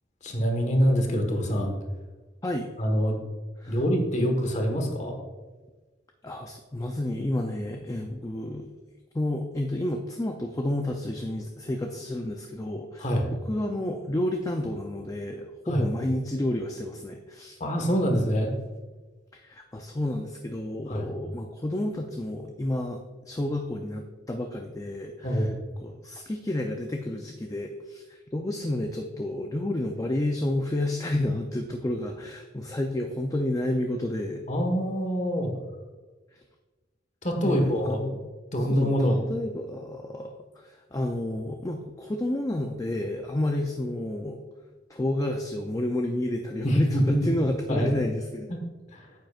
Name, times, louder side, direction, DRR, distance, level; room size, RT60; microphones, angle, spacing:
voice 1, 0.2-1.7 2.8-3.2 3.7-5.1 13.0-13.2 15.7-15.8 17.6-18.5 20.9-21.1 25.2-25.5 34.5-35.5 37.2-38.0 38.5-39.2 46.6-47.3 47.7-47.9 48.5-48.6 48.9-49.1, equal, 40° left, 2 dB, 1.3 m, -25 dB
voice 2, 6.2-8.7 9.1-13.1 13.5-17.6 19.4-25.5 25.8-34.4 37.4-38.3 38.7-44.4 44.9-48.5, left 1 dB, 20° left, 4 dB, 0.5 m, -30 dB
9.1 x 7.7 x 2.4 m, 1.3 s
head